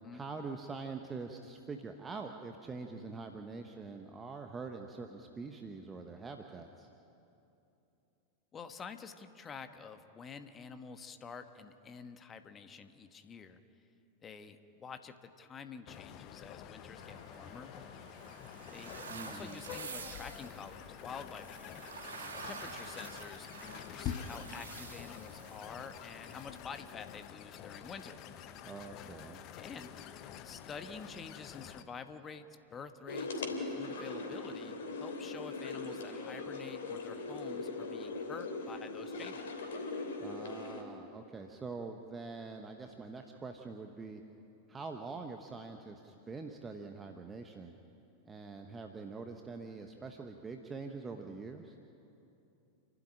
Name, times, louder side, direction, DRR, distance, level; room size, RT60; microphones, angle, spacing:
voice 1, 0.1-6.9 19.1-19.6 28.6-29.4 40.2-44.2 44.7-47.7 48.2-51.8, right 4 dB, 15° right, 5 dB, 1.2 m, -44 dB
voice 2, 8.5-13.6 14.2-17.7 18.7-18.9 19.3-28.1 29.6-29.9 30.4-32.4 32.7-39.5, left 6 dB, 20° left, 9 dB, 1.3 m, -48 dB
sound 1, 15.9-31.8, left 9 dB, 40° left, 1.1 m, -47 dB
sound 2, 17.0-26.6, right 5 dB, 70° right, 2.0 m, -49 dB
sound 3, 33.1-40.8, left 3 dB, 60° left, 3.1 m, -40 dB
29.0 x 12.5 x 9.9 m, 2.8 s
figure-of-eight pair, 90°, 0 cm